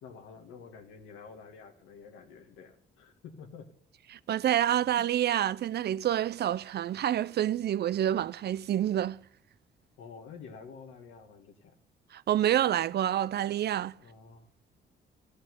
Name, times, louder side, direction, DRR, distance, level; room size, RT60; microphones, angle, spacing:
voice 1, 0.0-3.7 10.0-11.8 14.0-14.5, left 5 dB, 90° left, 2.3 m, -49 dB
voice 2, 4.1-9.2 12.1-13.9, right 11 dB, 55° right, 0.5 m, -28 dB
15.0 x 6.5 x 9.8 m
cardioid pair, 90°, 20 cm